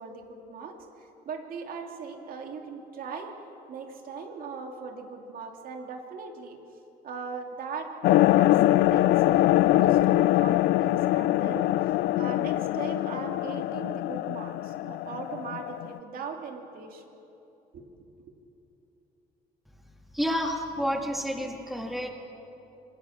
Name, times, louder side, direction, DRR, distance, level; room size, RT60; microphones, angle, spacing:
voice 1, 0.0-3.3 3.7-6.6 7.0-11.7 12.2-17.0 17.7-18.0, right 5 dB, 60° right, 3 dB, 2.8 m, -39 dB
sound 1, 8.0-16.0, left 15 dB, 80° left, 0.5 m, -23 dB
voice 2, 20.1-22.1, equal, ahead, 2 dB, 2.5 m, -29 dB
26.0 x 18.0 x 7.4 m, 3.0 s
cardioid pair, 110°, 17 cm